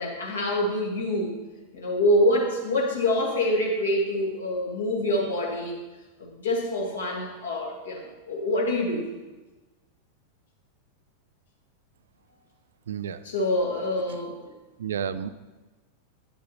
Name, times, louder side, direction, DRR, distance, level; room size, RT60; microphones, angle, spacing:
voice 1, 0.0-1.4 1.7-5.8 6.2-9.1 13.3-14.5, left 1 dB, 70° left, -2 dB, 1.9 m, -26 dB
voice 2, 12.9-13.2 14.1-14.2 14.8-15.3, right 8 dB, 65° right, 13 dB, 0.3 m, -31 dB
10.0 x 7.0 x 3.0 m, 1.2 s
figure-of-eight pair, 90°, 0 cm